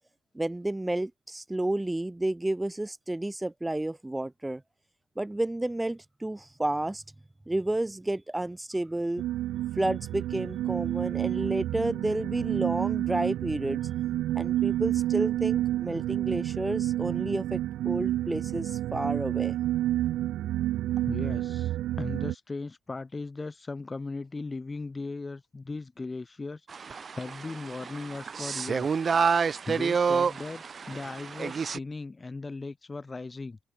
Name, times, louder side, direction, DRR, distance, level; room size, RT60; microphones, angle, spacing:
voice 1, 0.3-4.6 5.2-7.0 7.5-9.2 9.8-13.8 14.4-17.6 17.8-19.6, right 1 dB, 10° right, 2.0 m, -31 dB
sound 1, 9.2-22.3, right 14 dB, 75° right, 0.4 m, -29 dB
voice 2, 21.0-21.7 22.0-33.6, left 3 dB, 25° left, 1.6 m, -38 dB
sound 2, 26.7-31.8, right 6 dB, 40° right, 1.4 m, -29 dB
supercardioid pair, 75°, 0 cm